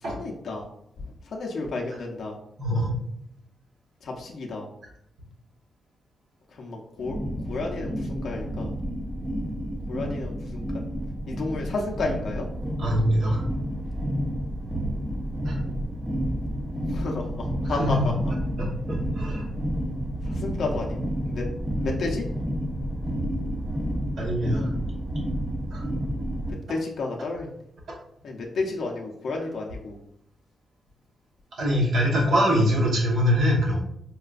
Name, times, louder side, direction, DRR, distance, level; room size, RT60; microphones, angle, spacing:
voice 1, 0.0-0.6 1.3-2.4 4.0-4.7 6.6-7.2 7.5-8.7 9.9-10.6 11.3-12.4 16.9-18.1 20.3-21.0 21.2-21.5 21.8-22.3 26.7-27.5 28.2-30.0, left 3 dB, 55° left, -1 dB, 0.5 m, -31 dB
voice 2, 2.6-2.9 12.8-13.4 15.4-15.6 17.6-18.1 18.6-19.4 24.2-24.7 25.7-25.8 31.6-33.8, equal, 80° right, -3 dB, 1.0 m, -23 dB
sound 1, 7.0-26.5, equal, 10° right, 0.4 m, -30 dB
4.6 x 2.1 x 2.4 m, 0.74 s
wide cardioid pair, 140°, 0 cm